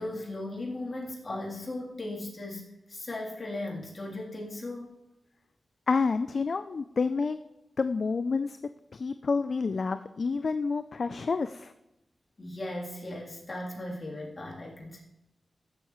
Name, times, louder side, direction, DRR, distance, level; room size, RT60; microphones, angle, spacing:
voice 1, 0.0-4.9 12.4-15.0, left 1 dB, 50° left, -3 dB, 3.2 m, -37 dB
voice 2, 5.9-7.4 7.8-8.6 8.9-11.7, left 4 dB, 65° left, 11 dB, 0.4 m, -29 dB
15.5 x 7.3 x 3.1 m, 0.92 s
cardioid pair, 45°, 0 cm